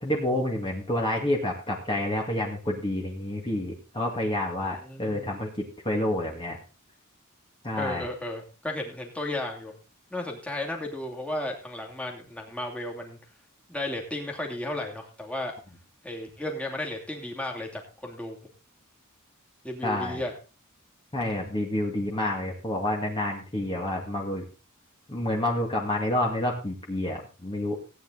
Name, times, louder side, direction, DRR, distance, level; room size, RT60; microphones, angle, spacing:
voice 1, 0.0-6.6 7.6-8.1 19.8-20.2 21.1-24.4 25.1-27.8, left 1 dB, 25° left, -1 dB, 2.2 m, -29 dB
voice 2, 4.8-5.4 7.8-9.7 10.1-13.2 13.7-15.5 16.0-18.4 19.6-20.3, left 1 dB, 5° left, 0 dB, 2.7 m, -34 dB
16.5 x 9.4 x 3.9 m, 0.33 s
head